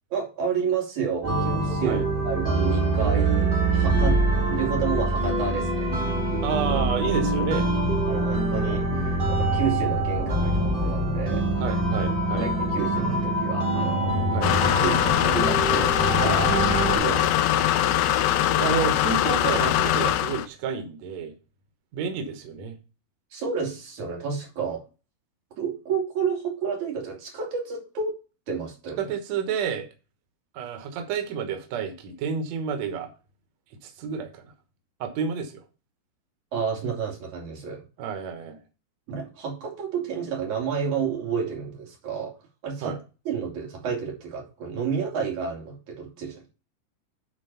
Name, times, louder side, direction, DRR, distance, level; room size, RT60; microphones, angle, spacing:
voice 1, 0.1-4.2 4.5-5.9 8.0-11.4 12.4-16.6 16.9-17.7 23.3-24.8 25.6-28.1 28.5-29.1 36.5-37.8 39.1-42.3 42.6-42.9 43.3-46.4, right 6 dB, 50° right, 0 dB, 3.6 m, -30 dB
sound 1, 1.2-17.0, right 2 dB, 15° right, 3.0 m, -24 dB
voice 2, 6.4-7.7 11.6-12.5 14.3-14.5 16.5-16.6 17.1-17.2 18.6-21.3 21.9-22.8 29.0-29.9 30.5-33.1 33.8-34.4 35.0-35.5 38.0-38.6 42.8-43.0, right 6 dB, 80° right, 6 dB, 1.5 m, -30 dB
sound 2, 14.4-20.5, left 12 dB, 80° left, 2.3 m, -22 dB
9.8 x 4.5 x 5.6 m, 0.32 s
omnidirectional pair, 4.9 m